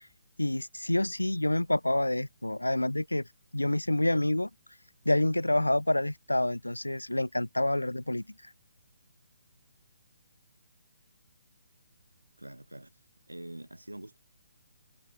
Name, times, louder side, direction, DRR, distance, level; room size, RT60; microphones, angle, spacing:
voice 1, 0.4-3.2 3.5-4.5 5.1-8.2, left 1 dB, 85° left, 0.6 m, -27 dB
voice 2, 12.4-12.9 13.3-14.2, right 1 dB, 85° right, 2.7 m, -44 dB
figure-of-eight pair, 135°, 0 cm